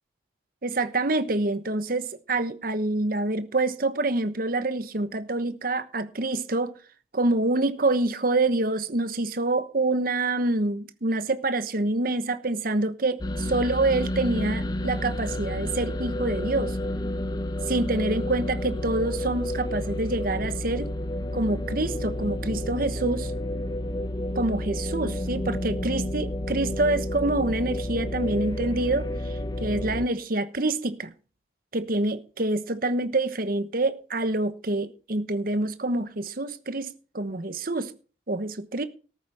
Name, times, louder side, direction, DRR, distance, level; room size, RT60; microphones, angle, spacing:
voice 1, 0.6-6.8 7.1-16.8 17.7-20.9 21.3-23.3 24.3-29.1 29.6-31.1 31.7-37.9 38.3-38.8, right 2 dB, 50° right, 1.1 m, -26 dB
sound 1, 13.2-30.1, left 1 dB, 20° left, 0.7 m, -30 dB
14.0 x 8.1 x 5.6 m
head